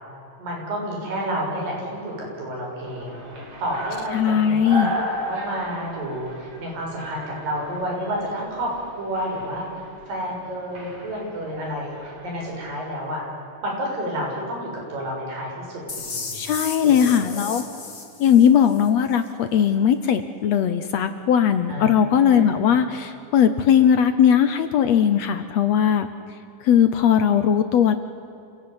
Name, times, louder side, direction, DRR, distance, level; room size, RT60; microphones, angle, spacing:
voice 1, 0.4-3.2 3.6-8.7 9.0-13.2 13.6-16.4 16.8-17.4 21.7-22.4, equal, 80° right, -2 dB, 8.5 m, -30 dB
sound 1, 2.9-12.8, equal, 45° right, 5.1 m, -35 dB
voice 2, 4.1-5.0 16.3-17.6 18.2-26.1 26.6-28.0, left 8 dB, 70° left, 10 dB, 1.7 m, -19 dB
down sweep, 15.9-18.9, left 4 dB, 30° left, 2.6 m, -34 dB
28.5 x 17.5 x 9.7 m, 2.9 s
omnidirectional pair, 3.9 m